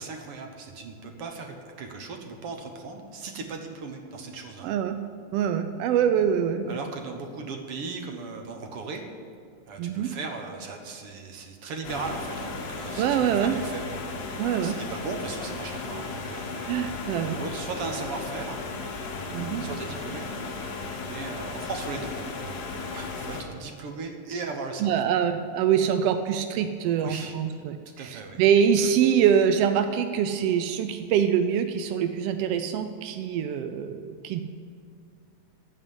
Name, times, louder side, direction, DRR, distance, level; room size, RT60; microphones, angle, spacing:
voice 1, 0.0-4.7 6.7-9.0 9.7-18.6 19.6-20.3 20.5-20.7 21.0-25.0 27.0-27.4 28.0-28.4, right 4 dB, 60° right, 4 dB, 1.9 m, -37 dB
voice 2, 4.6-5.0 5.3-6.8 9.8-10.1 13.0-13.6 14.4-14.7 16.7-17.4 19.3-19.6 24.8-34.4, right 8 dB, 80° right, 8 dB, 1.4 m, -24 dB
sound 1, 11.8-23.4, left 4 dB, 55° left, 1.1 m, -35 dB
15.0 x 5.6 x 9.8 m, 2.2 s
omnidirectional pair, 3.3 m